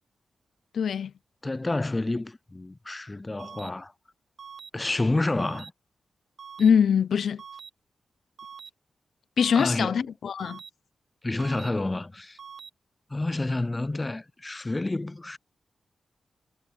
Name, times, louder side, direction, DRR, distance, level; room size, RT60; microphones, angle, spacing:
voice 1, 0.7-1.1 6.6-7.4 9.4-10.6, left 7 dB, 75° left, 0.5 m, -23 dB
voice 2, 1.4-3.9 4.7-5.7 9.6-10.0 11.2-12.4 13.1-15.4, left 2 dB, 20° left, 0.3 m, -29 dB
sound 1, 3.4-3.7 4.4-4.7 5.4-5.7 6.4-6.7 7.4-7.7 8.4-8.7 9.4-9.7 10.4-10.7 11.4-11.7 12.4-12.7, right 7 dB, 65° right, 0.6 m, -43 dB
wide cardioid pair, 125°, 0 cm